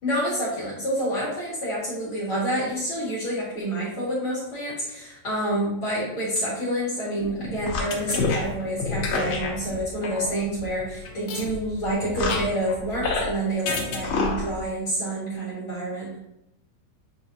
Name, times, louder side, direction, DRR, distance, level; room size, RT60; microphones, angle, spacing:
voice 1, 0.0-16.2, right 1 dB, 45° left, -8 dB, 2.0 m, -28 dB
sound 1, 7.2-13.3 13.7-14.6, left 4 dB, 75° left, 1.6 m, -29 dB
8.6 x 4.0 x 2.8 m, 0.83 s
omnidirectional pair, 4.8 m